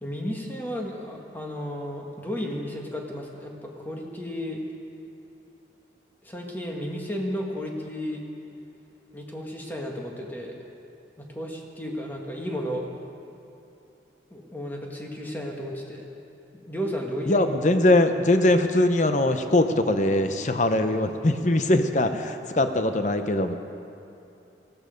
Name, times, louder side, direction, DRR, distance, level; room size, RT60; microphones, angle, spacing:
voice 1, 0.0-4.6 6.2-8.3 9.1-10.6 11.2-12.9 14.3-16.0 16.5-17.4, equal, 10° left, 0 dB, 1.7 m, -33 dB
voice 2, 17.3-23.5, left 1 dB, 45° left, 8 dB, 0.8 m, -21 dB
18.5 x 15.0 x 5.2 m, 2.8 s
head